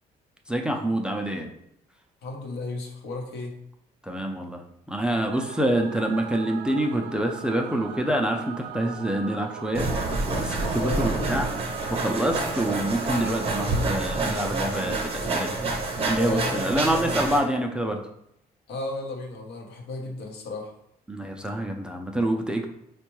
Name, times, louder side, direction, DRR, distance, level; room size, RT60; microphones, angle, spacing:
voice 1, 0.5-1.5 4.0-11.5 11.9-15.7 16.0-18.0 21.1-22.7, right 1 dB, 5° right, 2 dB, 0.3 m, -27 dB
voice 2, 2.2-3.5 10.7-11.3 16.2-17.2 18.7-20.7, left 2 dB, 80° left, 1 dB, 0.8 m, -34 dB
Singing / Musical instrument, 5.0-16.3, right 8 dB, 70° right, 0.4 m, -40 dB
sound 1, 9.8-17.4, right 2 dB, 35° right, 0.7 m, -28 dB
4.3 x 2.2 x 3.0 m, 0.74 s
cardioid pair, 110°, 17 cm